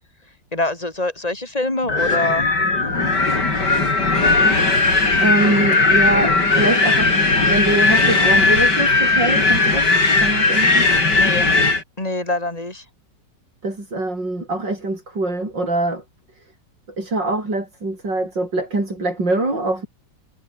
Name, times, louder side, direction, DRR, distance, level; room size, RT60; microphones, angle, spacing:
voice 1, 0.5-2.5 11.1-11.5 12.0-12.8, left 2 dB, 20° left, 4.8 m, -24 dB
Wind, 1.9-11.8, left 3 dB, 70° left, 5.3 m, -17 dB
voice 2, 4.9-7.1 7.5-9.9 10.2-10.9 13.6-16.0 17.0-19.9, right 2 dB, 85° right, 8.6 m, -23 dB
omnidirectional pair, 1.9 m